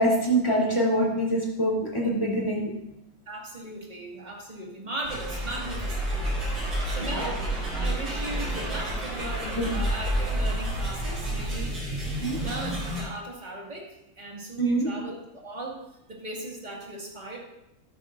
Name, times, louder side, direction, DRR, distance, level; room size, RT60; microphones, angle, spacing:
voice 1, 0.0-2.7 7.2-7.3 9.4-9.7 12.2-12.4 14.6-14.9, right 1 dB, 15° left, -4 dB, 3.1 m, -24 dB
voice 2, 3.3-6.1 6.6-11.8 12.4-15.8 16.1-17.4, right 2 dB, 20° right, -3 dB, 2.0 m, -37 dB
sound 1, 5.0-13.0, right 1 dB, 65° right, 4.3 m, -30 dB
13.0 x 10.5 x 2.6 m, 0.84 s
omnidirectional pair, 2.2 m